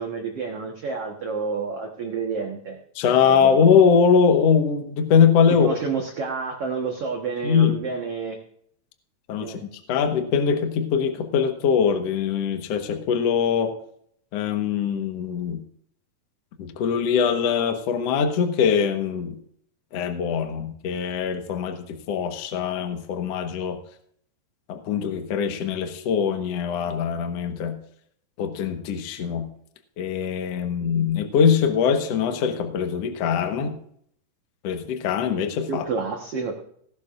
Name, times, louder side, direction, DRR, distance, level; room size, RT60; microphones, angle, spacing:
voice 1, 0.0-2.8 3.3-3.5 5.5-8.4 9.4-9.7 35.7-36.5, right 5 dB, 80° right, 2 dB, 1.3 m, -29 dB
voice 2, 2.9-5.7 7.4-7.7 9.3-9.6 9.9-13.7 14.3-15.6 16.6-19.3 19.9-23.8 24.7-27.8 28.4-29.5 30.0-33.8 34.6-35.8, left 6 dB, 70° left, 6 dB, 1.5 m, -22 dB
19.0 x 11.5 x 2.5 m, 0.66 s
omnidirectional pair, 4.8 m